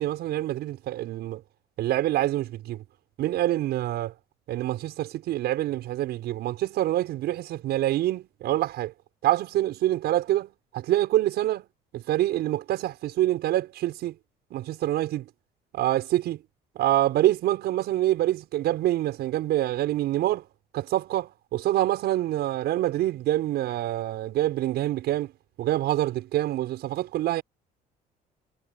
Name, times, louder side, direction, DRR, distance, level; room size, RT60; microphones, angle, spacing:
voice 1, 0.0-1.4 1.8-2.8 3.2-4.1 4.5-8.9 9.2-11.7 11.9-14.2 14.5-15.3 15.7-16.4 16.8-20.5 20.7-25.3 25.6-27.4, right 14 dB, 75° right, 7.0 m, -26 dB
cardioid pair, 110°, 17 cm